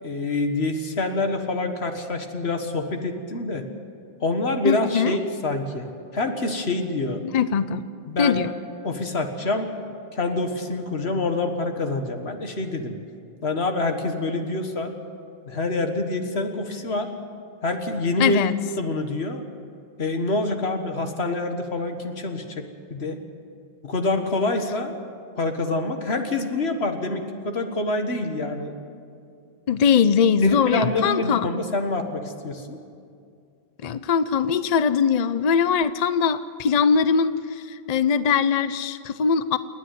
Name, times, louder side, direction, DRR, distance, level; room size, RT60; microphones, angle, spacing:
voice 1, 0.0-3.6 4.2-7.2 8.1-8.4 8.8-9.7 10.1-13.0 13.4-14.9 15.5-17.1 17.6-19.4 20.0-22.6 22.9-23.2 23.8-24.9 25.4-28.7 30.4-32.8, left 2 dB, 85° left, 5 dB, 1.9 m, -26 dB
voice 2, 4.6-5.1 7.3-7.8 8.2-8.5 18.2-18.5 29.7-31.5 33.8-37.3 37.7-39.6, left 6 dB, 45° left, 13 dB, 0.6 m, -21 dB
28.5 x 10.0 x 9.3 m, 2.4 s
omnidirectional pair, 1.0 m